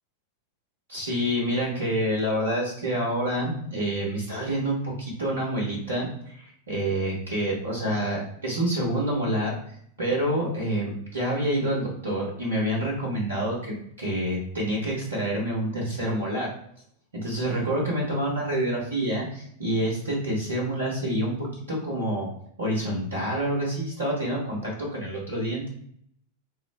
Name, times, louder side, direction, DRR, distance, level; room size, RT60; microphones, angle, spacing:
voice 1, 0.9-16.5 17.1-22.3 22.6-25.7, right 1 dB, 70° right, -3 dB, 1.2 m, -27 dB
4.1 x 2.0 x 3.4 m, 0.68 s
figure-of-eight pair, 90°, 0 cm